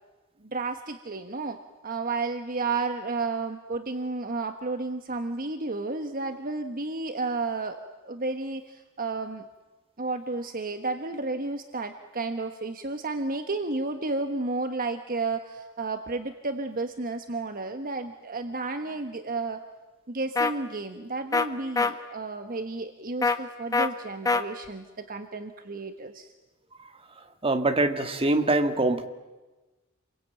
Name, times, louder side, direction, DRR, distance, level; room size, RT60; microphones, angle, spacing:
voice 1, 0.4-9.5 10.0-19.6 20.1-26.3, right 3 dB, 45° right, 7 dB, 1.3 m, -32 dB
sound 1, 20.4-20.5 21.3-21.5 21.8-21.9 23.2-23.4 23.7-23.9 24.3-24.4, left 4 dB, 15° left, 1.2 m, -23 dB
voice 2, 27.4-29.1, right 2 dB, 25° right, 6 dB, 1.8 m, -24 dB
28.5 x 22.5 x 9.1 m, 1.2 s
head